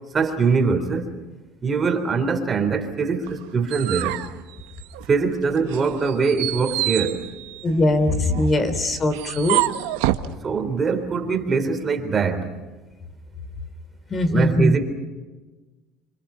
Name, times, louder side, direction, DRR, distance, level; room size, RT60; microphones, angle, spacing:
voice 1, 0.1-1.1 1.6-4.2 5.1-7.2 10.4-12.5 14.3-14.8, right 5 dB, 30° right, 6 dB, 3.7 m, -22 dB
sound 1, 3.3-5.3 5.7-10.3, right 16 dB, 85° right, 1.4 m, -28 dB
voice 2, 7.6-9.6 14.1-14.7, left 1 dB, 30° left, 10 dB, 3.4 m, -20 dB
30.0 x 26.5 x 5.8 m, 1.2 s
supercardioid pair, 110°, 0 cm